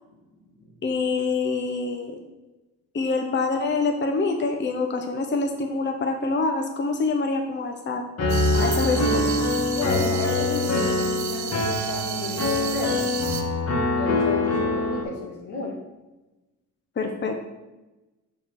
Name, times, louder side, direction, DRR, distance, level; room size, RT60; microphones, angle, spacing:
voice 1, 0.8-2.2 2.9-8.0 8.6-9.5 17.0-17.4, left 3 dB, 40° left, 4 dB, 0.9 m, -26 dB
Piano, 8.2-15.0, left 2 dB, 55° left, 1.6 m, -24 dB
sound 1, 8.3-13.4, right 9 dB, 75° right, 0.9 m, -33 dB
voice 2, 9.7-13.1 14.0-15.8, left 2 dB, 85° left, -1 dB, 2.1 m, -33 dB
6.3 x 6.2 x 4.7 m, 1.1 s
cardioid pair, 90°, 30 cm